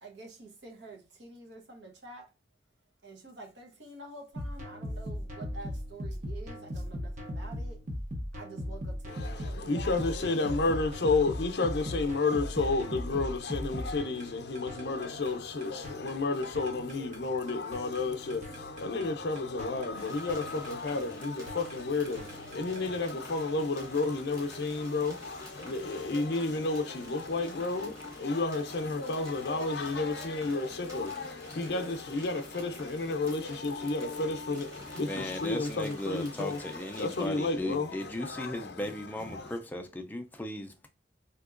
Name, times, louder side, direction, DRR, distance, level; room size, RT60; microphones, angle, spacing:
voice 1, 0.0-2.3 3.0-7.8 8.3-10.7, right 2 dB, 75° right, 0.9 m, -48 dB
sound 1, 4.3-22.9, equal, 40° right, 0.8 m, -39 dB
voice 2, 9.1-39.6, left 3 dB, 70° left, 0.5 m, -31 dB
sound 2, 19.9-37.3, equal, 20° right, 1.1 m, -50 dB
voice 3, 35.0-40.9, left 1 dB, 10° left, 0.3 m, -37 dB
3.6 x 2.8 x 2.4 m
head